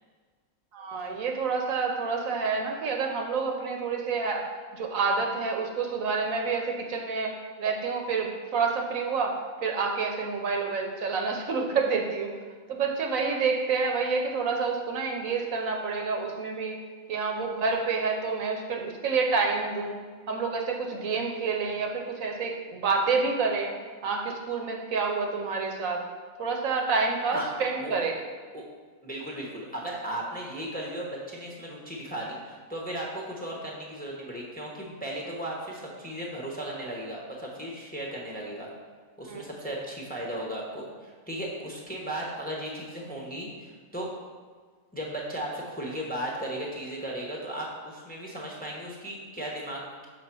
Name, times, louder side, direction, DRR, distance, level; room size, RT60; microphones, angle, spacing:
voice 1, 0.7-4.5 4.7-7.3 7.6-12.3 12.7-16.8 17.1-20.0 20.3-23.7 24.0-26.0 26.4-28.2 39.2-39.4, right 4 dB, 70° right, 2 dB, 1.2 m, -28 dB
voice 2, 29.0-38.7 39.2-44.1 44.9-50.1, right 1 dB, 5° left, -3 dB, 0.9 m, -36 dB
6.1 x 4.0 x 6.0 m, 1.5 s
omnidirectional pair, 1.5 m